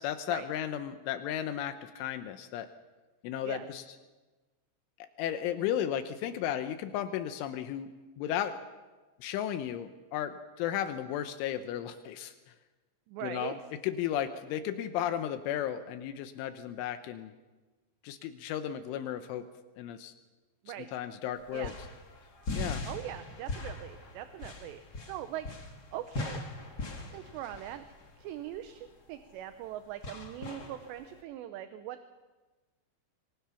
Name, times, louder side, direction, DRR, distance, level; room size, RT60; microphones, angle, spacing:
voice 1, 0.0-2.7 3.2-3.8 5.2-8.6 9.2-12.3 13.2-13.6 13.8-17.3 18.0-19.5 19.8-20.1 20.9-21.7 22.5-22.9, left 10 dB, 85° left, 9 dB, 3.4 m, -34 dB
voice 2, 13.1-13.6 20.6-20.9 21.5-21.7 22.9-25.5 25.9-26.4 27.0-27.8 28.2-32.1, right 12 dB, 75° right, 9 dB, 2.8 m, -41 dB
sound 1, 21.3-31.2, left 2 dB, 35° left, 1.7 m, -41 dB
26.0 x 24.0 x 5.8 m, 1.2 s
omnidirectional pair, 5.5 m